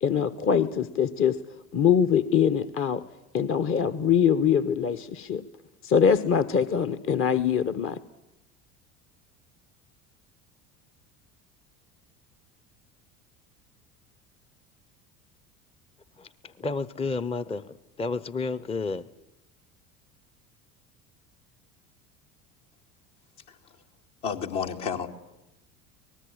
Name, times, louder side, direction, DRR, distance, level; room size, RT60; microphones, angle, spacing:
voice 1, 0.0-1.4 1.7-3.0 3.3-5.4 5.8-8.0, left 7 dB, 30° left, 1.1 m, -23 dB
voice 2, 16.2-19.1, left 4 dB, 15° left, 0.8 m, -31 dB
voice 3, 24.2-25.1, left 6 dB, 60° left, 2.6 m, -30 dB
24.5 x 19.5 x 8.9 m
figure-of-eight pair, 70°, 41 cm